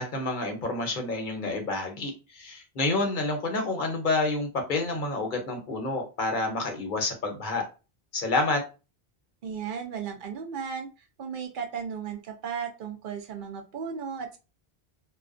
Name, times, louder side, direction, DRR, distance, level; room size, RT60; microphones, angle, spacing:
voice 1, 0.0-7.6 8.1-8.6, left 2 dB, 55° left, 3 dB, 0.8 m, -29 dB
voice 2, 9.4-10.9 11.2-14.4, right 6 dB, 60° right, 4 dB, 0.7 m, -35 dB
2.4 x 2.1 x 2.4 m, 0.30 s
omnidirectional pair, 1.1 m